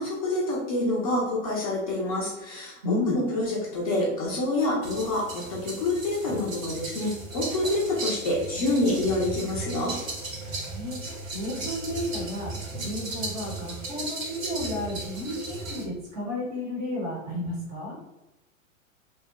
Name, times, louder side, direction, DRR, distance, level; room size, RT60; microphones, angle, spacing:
voice 1, 0.0-10.0, left 2 dB, 30° left, -4 dB, 0.5 m, -27 dB
voice 2, 2.8-3.2 10.4-11.0 11.3-12.5 12.8-18.0, left 1 dB, 20° right, -3 dB, 0.6 m, -32 dB
sound 1, 4.8-15.9, right 2 dB, 75° right, 0.8 m, -36 dB
2.7 x 2.0 x 2.3 m, 1.0 s
figure-of-eight pair, 110°, 40 cm